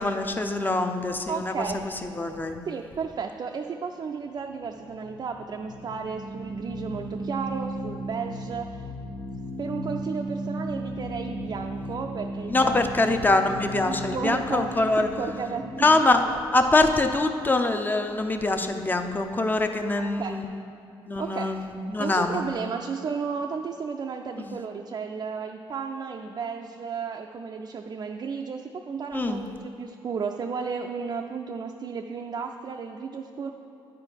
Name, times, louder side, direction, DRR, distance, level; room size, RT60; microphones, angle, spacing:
voice 1, 0.0-2.6 12.5-15.1 15.7-16.2 16.5-20.4 21.1-22.4 24.4-24.6 29.1-29.4, left 2 dB, 20° left, 6 dB, 0.6 m, -24 dB
voice 2, 1.3-1.8 2.7-8.8 9.6-13.1 13.9-16.0 16.2-16.4 20.0-20.4 21.2-21.7 22.0-33.5, right 5 dB, 45° right, 3 dB, 0.4 m, -33 dB
sound 1, 4.4-17.6, right 1 dB, 65° left, 0.9 m, -36 dB
9.9 x 4.6 x 5.2 m, 2.8 s
cardioid pair, 85°, 10 cm